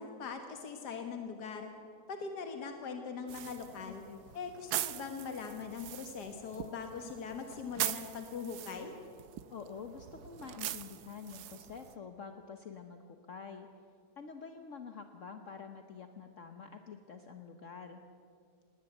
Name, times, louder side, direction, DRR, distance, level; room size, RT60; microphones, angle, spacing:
voice 1, 0.0-1.7 2.1-4.0 4.3-8.9, left 5 dB, 80° left, 5 dB, 2.0 m, -41 dB
sound 1, 3.3-12.0, right 12 dB, 75° right, 1.3 m, -42 dB
voice 2, 3.9-4.2 9.5-13.7 14.2-18.0, left 6 dB, 55° left, 6 dB, 1.3 m, -47 dB
19.5 x 18.5 x 7.9 m, 2.3 s
omnidirectional pair, 1.7 m